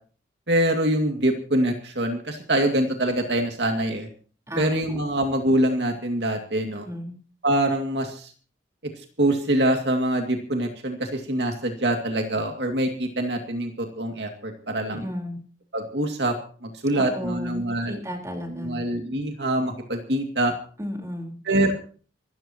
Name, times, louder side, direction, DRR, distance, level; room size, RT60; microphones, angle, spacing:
voice 1, 0.5-4.1 4.6-6.9 7.4-8.3 9.2-15.0 15.7-16.4 16.6-18.0 18.6-20.5 21.5-21.7, right 1 dB, 65° right, 4 dB, 2.4 m, -24 dB
voice 2, 4.5-5.0 6.8-7.1 14.8-15.4 16.9-18.8 20.8-21.4, equal, 15° right, 2 dB, 4.3 m, -34 dB
26.0 x 14.5 x 3.0 m, 0.41 s
head